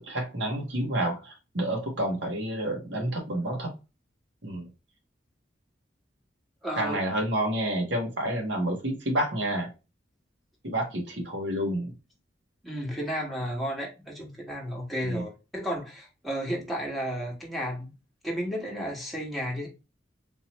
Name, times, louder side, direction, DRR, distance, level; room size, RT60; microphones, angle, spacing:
voice 1, 0.0-3.7 4.4-4.7 6.8-9.7 10.6-11.9 15.0-15.2, right 1 dB, 75° right, 1.4 m, -29 dB
voice 2, 6.6-7.0 12.6-17.9 18.2-19.7, equal, ahead, 1.3 m, -33 dB
3.8 x 2.9 x 3.0 m
head